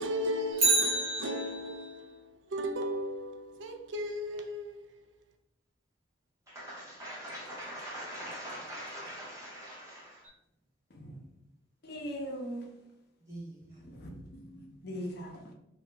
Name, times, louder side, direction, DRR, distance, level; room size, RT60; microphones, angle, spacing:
voice 1, 0.0-4.8, equal, 65° right, 0.3 m, -35 dB
Bicycle, 0.5-1.9 10.2-10.3, right 3 dB, 80° right, 1.0 m, -28 dB
voice 2, 6.5-10.2 13.3-13.8, equal, 15° right, 1.0 m, -43 dB
voice 3, 11.8-12.7 13.8-15.5, equal, 55° left, 0.5 m, -40 dB
2.8 x 2.3 x 3.3 m
head